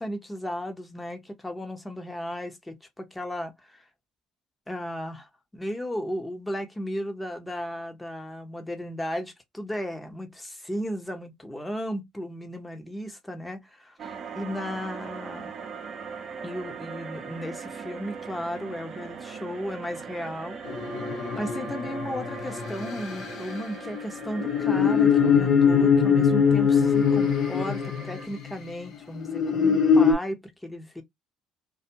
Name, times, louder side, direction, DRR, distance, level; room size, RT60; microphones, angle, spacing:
voice 1, 0.0-3.9 4.7-15.5 16.4-20.8 21.3-31.0, equal, 10° left, 0.8 m, -35 dB
sound 1, 14.0-28.3, right 6 dB, 50° right, 0.6 m, -41 dB
sound 2, 20.7-28.5 29.2-30.1, left 6 dB, 60° left, 0.7 m, -22 dB
2.4 x 2.3 x 2.8 m
hypercardioid pair, 65°, 0 cm